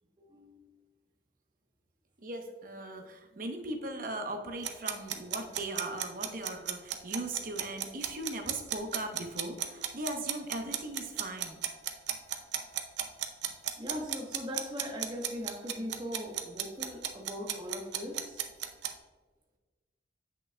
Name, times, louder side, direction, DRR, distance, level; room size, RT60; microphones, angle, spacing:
voice 1, 0.2-0.7 13.8-18.4, equal, 25° right, 1 dB, 1.0 m, -40 dB
voice 2, 2.2-11.6, right 2 dB, 45° right, 4 dB, 0.8 m, -39 dB
sound 1, 4.6-18.9, right 11 dB, 70° right, 0.6 m, -34 dB
7.9 x 6.1 x 2.2 m, 1.4 s
head